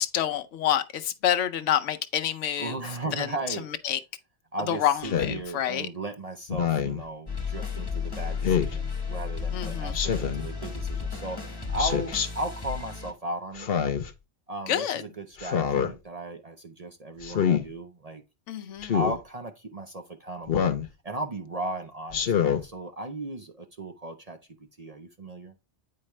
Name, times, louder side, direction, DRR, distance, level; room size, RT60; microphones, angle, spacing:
voice 1, 0.0-2.8 3.2-3.3 3.8-4.0 4.7-5.9 9.5-10.0 14.7-15.0 18.5-18.9, left 10 dB, 80° left, 1.0 m, -27 dB
voice 2, 2.6-3.7 4.5-13.7 14.5-18.2 18.9-20.7 21.0-25.5, right 1 dB, 40° right, 0.7 m, -36 dB
Speech synthesizer, 5.0-5.4 6.5-7.0 8.4-8.8 9.9-10.5 11.8-12.3 13.6-14.1 15.4-15.9 17.2-17.6 18.8-19.2 20.5-20.9 22.1-22.6, left 8 dB, 60° left, 1.0 m, -25 dB
sound 1, 7.3-13.1, left 5 dB, 20° left, 1.1 m, -33 dB
8.7 x 4.7 x 3.2 m
omnidirectional pair, 1.2 m